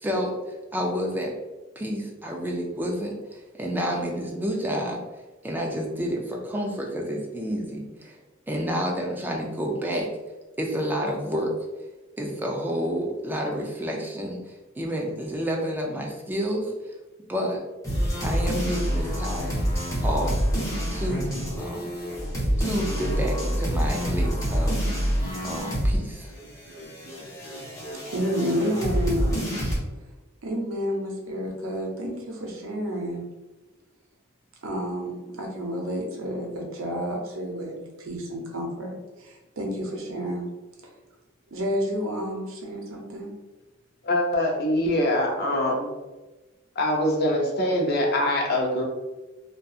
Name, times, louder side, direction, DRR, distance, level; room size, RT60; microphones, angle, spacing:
voice 1, 0.0-0.4 0.7-1.3 1.8-5.0 5.4-8.2 8.5-10.1 10.6-11.5 12.2-16.7 17.3-17.6 18.2-19.6 20.0-20.4 20.9-21.9 22.6-24.8 25.4-26.3, equal, 10° right, 0 dB, 0.4 m, -29 dB
sound 1, 17.8-26.0 26.3-29.8, equal, 15° left, 0.8 m, -27 dB
voice 2, 28.1-29.4 30.4-33.2 34.6-40.5 41.5-43.3, equal, 85° right, 0 dB, 0.6 m, -30 dB
voice 3, 44.0-45.9 46.8-48.8, left 1 dB, 50° left, 0 dB, 0.6 m, -23 dB
2.7 x 2.3 x 2.3 m, 1.1 s
head